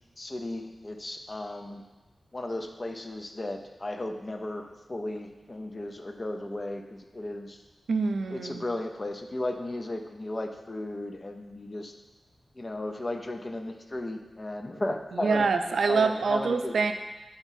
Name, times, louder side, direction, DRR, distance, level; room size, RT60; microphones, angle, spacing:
voice 1, 0.2-1.8 2.3-7.6 8.3-11.9 12.6-15.5 15.9-16.8, left 1 dB, 25° left, 5 dB, 0.5 m, -35 dB
voice 2, 7.9-8.6 15.1-16.9, right 4 dB, 85° right, 7 dB, 0.4 m, -25 dB
7.2 x 5.0 x 2.7 m, 1.1 s
wide cardioid pair, 135°, 0 cm